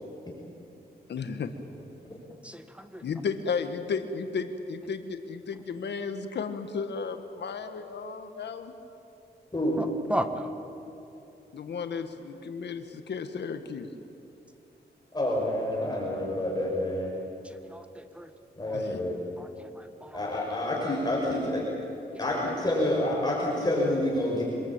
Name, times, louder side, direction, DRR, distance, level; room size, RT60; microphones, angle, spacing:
voice 1, 1.1-1.6 3.0-8.7 11.5-13.9 18.7-19.0, left 5 dB, 80° left, 8 dB, 1.6 m, -34 dB
voice 2, 2.4-3.1 9.8-10.5 17.4-18.3 18.6-18.8 19.4-20.3 22.1-22.2, right 1 dB, 5° right, 8 dB, 1.7 m, -36 dB
voice 3, 15.1-17.1 18.6-19.2 20.1-21.7 22.2-24.4, left 1 dB, 25° left, -3 dB, 6.1 m, -28 dB
26.0 x 21.0 x 8.9 m, 2.9 s
cardioid pair, 90°, 17 cm